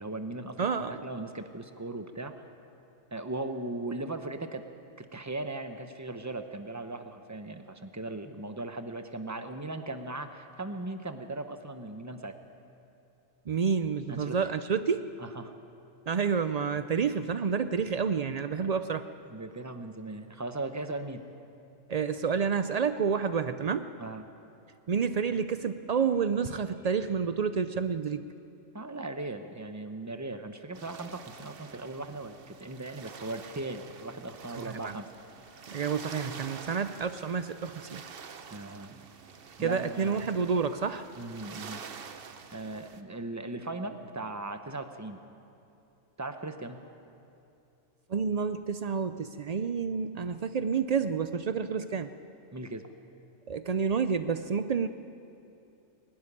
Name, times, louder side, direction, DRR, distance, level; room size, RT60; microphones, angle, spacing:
voice 1, 0.0-0.6 0.9-2.3 3.1-4.6 5.0-12.4 14.1-14.4 15.2-15.5 18.5-18.7 19.3-21.2 24.0-24.3 28.7-35.1 38.5-39.0 39.6-40.3 41.2-41.8 42.5-45.2 46.2-46.8 52.5-52.9, right 2 dB, 15° right, 7 dB, 0.8 m, -38 dB
voice 2, 0.6-1.0 13.5-15.1 16.1-19.1 21.9-23.9 24.9-28.2 34.6-35.0 35.7-38.0 39.6-41.0 48.1-52.1 53.5-54.9, right 6 dB, 75° right, 10 dB, 0.3 m, -29 dB
sound 1, 30.7-43.0, right 6 dB, 50° right, 1.0 m, -47 dB
21.0 x 12.5 x 9.9 m, 2.7 s
omnidirectional pair, 1.4 m